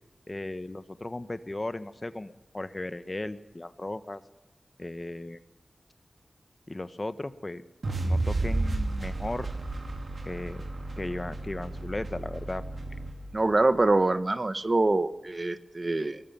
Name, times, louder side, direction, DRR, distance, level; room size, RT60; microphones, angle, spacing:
voice 1, 0.3-4.2 4.8-5.4 6.7-7.6 8.0-9.5 10.2-10.6 11.0-12.6, left 2 dB, 35° left, 12 dB, 1.3 m, -36 dB
sound 1, 7.8-14.0, right 2 dB, 70° right, 2.9 m, -32 dB
voice 2, 13.3-16.2, right 2 dB, 45° right, 11 dB, 1.2 m, -25 dB
22.5 x 20.0 x 7.3 m, 1.0 s
cardioid pair, 45°, 0 cm